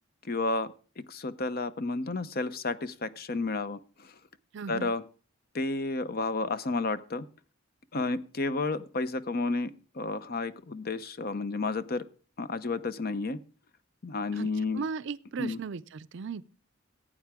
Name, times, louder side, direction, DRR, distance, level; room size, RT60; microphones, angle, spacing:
voice 1, 0.3-0.7 1.0-3.8 4.7-5.0 5.5-7.3 7.9-12.1 12.4-13.4 14.0-14.8 15.4-15.6, left 3 dB, 45° left, 0.7 m, -31 dB
voice 2, 4.5-4.9 14.3-14.5 14.7-16.4, right 5 dB, 60° right, 0.5 m, -36 dB
16.5 x 8.6 x 3.5 m
head